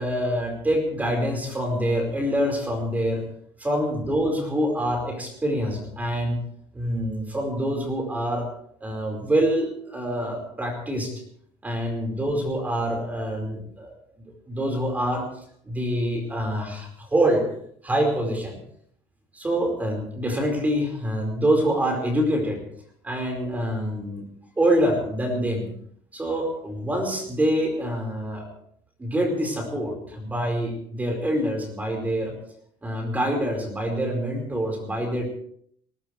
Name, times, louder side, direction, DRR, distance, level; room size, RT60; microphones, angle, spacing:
voice 1, 0.0-3.2 3.6-6.4 6.7-8.5 8.8-11.1 11.6-13.9 14.5-15.3 15.6-17.4 17.8-18.6 19.3-22.6 23.0-24.2 24.6-25.7 26.1-28.5 29.0-32.3 32.8-35.3, equal, 15° right, 3 dB, 4.8 m, -25 dB
20.0 x 19.0 x 3.3 m, 0.64 s
cardioid pair, 130°, 12 cm